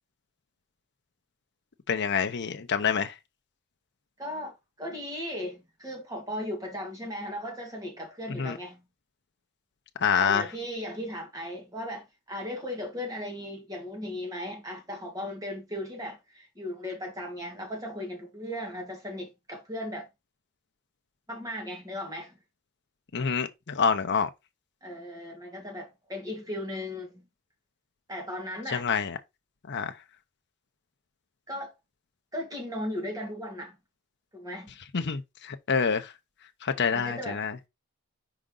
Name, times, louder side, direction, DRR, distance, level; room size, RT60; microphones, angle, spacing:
voice 1, 1.9-3.1 8.4-8.6 10.0-10.4 23.1-24.3 28.7-29.1 29.7-29.9 34.9-36.1 36.6-37.5, left 6 dB, 55° left, 0.7 m, -27 dB
voice 2, 4.2-8.9 10.1-20.1 21.3-22.4 24.8-27.3 28.1-28.9 31.5-31.7 32.3-33.8 34.3-34.7 36.9-37.4, left 1 dB, 15° right, 2.1 m, -37 dB
5.0 x 5.0 x 3.8 m
head